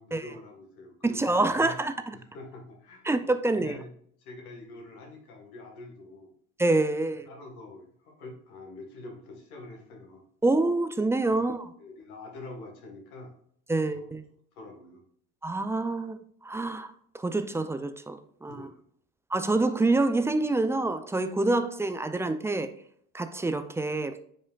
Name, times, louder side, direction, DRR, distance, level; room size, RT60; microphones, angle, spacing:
voice 1, 0.0-1.7 2.1-3.0 3.5-3.9 4.2-6.3 7.3-10.2 11.3-11.4 11.8-13.3 13.9-14.0 14.5-15.0 18.5-18.8, left 2 dB, 75° left, 1.7 m, -45 dB
voice 2, 1.0-2.2 3.1-3.8 6.6-7.3 10.4-11.7 13.7-14.2 15.4-16.2 16.4-18.7 19.3-22.7 23.1-24.2, right 2 dB, 5° right, 0.3 m, -27 dB
8.7 x 4.9 x 2.4 m
hypercardioid pair, 65°, 44 cm